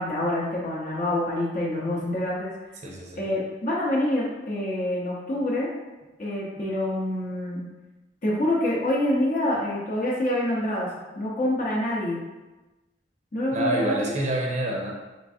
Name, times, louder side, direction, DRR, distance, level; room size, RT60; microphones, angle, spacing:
voice 1, 0.0-2.5 3.2-5.7 6.2-7.6 8.2-12.2 13.3-14.0, left 1 dB, 45° left, -5 dB, 0.7 m, -26 dB
voice 2, 2.8-3.3 6.5-6.6 13.5-14.9, right 1 dB, 35° right, -1 dB, 0.6 m, -27 dB
4.6 x 3.2 x 2.6 m, 1.1 s
head